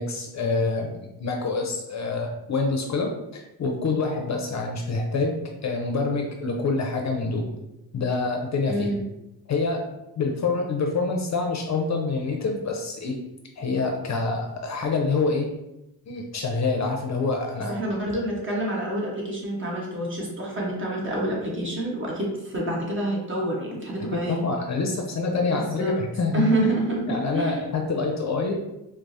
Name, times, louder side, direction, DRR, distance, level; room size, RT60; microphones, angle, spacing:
voice 1, 0.0-7.4 7.9-8.9 9.5-9.9 10.2-13.2 13.6-15.5 16.1-17.8 24.1-26.5 27.1-28.5, left 3 dB, 45° left, 2 dB, 0.6 m, -26 dB
voice 2, 8.7-9.0 17.7-24.4 25.5-26.0 26.3-27.6, right 1 dB, 30° right, -3 dB, 1.2 m, -27 dB
4.5 x 2.1 x 2.7 m, 0.91 s
cardioid pair, 85°, 40 cm